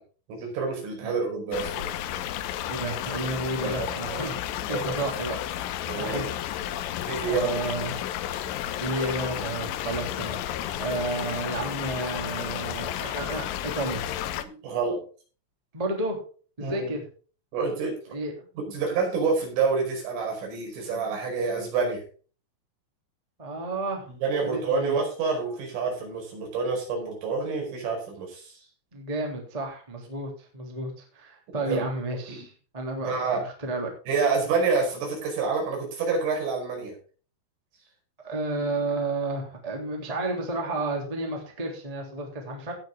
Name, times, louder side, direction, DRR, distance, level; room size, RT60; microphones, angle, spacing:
voice 1, 0.3-1.9 3.5-4.2 4.6-5.1 5.9-6.3 7.0-7.8 14.4-15.0 16.6-16.9 17.5-18.0 18.7-22.0 24.1-28.6 31.6-31.8 32.3-32.5 33.1-33.4 34.1-36.9, right 4 dB, 75° right, 0 dB, 7.6 m, -28 dB
sound 1, 1.5-14.4, left 11 dB, 75° left, 3.2 m, -32 dB
voice 2, 2.7-4.4 4.7-5.4 6.0-6.2 6.5-6.8 7.2-7.9 8.8-14.1 15.7-16.2 16.6-17.1 18.1-18.3 23.4-24.1 24.4-25.0 28.9-33.9 38.2-42.7, right 2 dB, 10° right, 1 dB, 2.1 m, -32 dB
17.0 x 7.3 x 3.8 m, 0.38 s
omnidirectional pair, 5.9 m